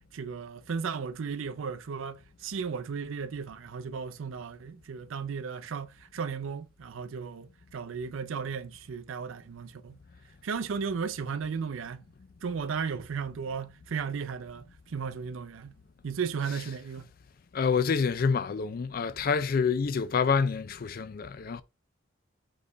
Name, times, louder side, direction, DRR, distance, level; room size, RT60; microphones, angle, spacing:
voice 1, 0.1-10.0 10.4-12.0 12.4-15.7 16.0-17.1, right 6 dB, 80° right, 0.4 m, -35 dB
voice 2, 17.5-21.6, left 5 dB, 45° left, 0.3 m, -27 dB
4.3 x 3.2 x 3.3 m
head